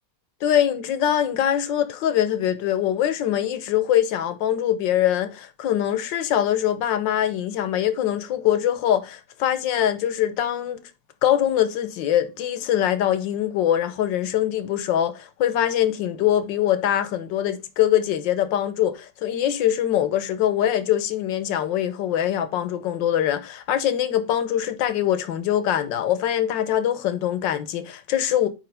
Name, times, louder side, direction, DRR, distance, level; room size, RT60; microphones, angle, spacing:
voice 1, 0.4-10.8 11.2-28.5, left 11 dB, 80° left, 1.5 m, -23 dB
8.7 x 3.2 x 3.4 m
omnidirectional pair, 2.0 m